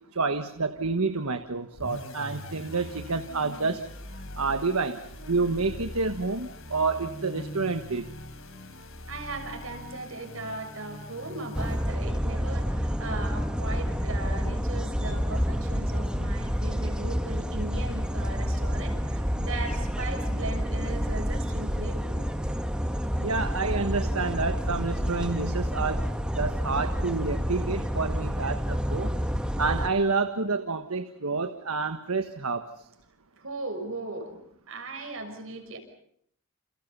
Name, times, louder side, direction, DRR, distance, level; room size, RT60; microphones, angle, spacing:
voice 1, 0.1-3.8 4.4-5.0 5.3-8.1 23.2-26.1 26.3-29.1 29.6-32.7, right 4 dB, 85° right, 9 dB, 1.4 m, -29 dB
sound 1, 1.7-12.2, left 1 dB, 70° left, 4.1 m, -42 dB
voice 2, 9.1-22.2 33.4-35.8, right 2 dB, 70° right, 5 dB, 6.3 m, -38 dB
sound 2, 11.5-29.9, equal, 5° right, 1.6 m, -29 dB
29.5 x 29.5 x 5.5 m, 0.68 s
head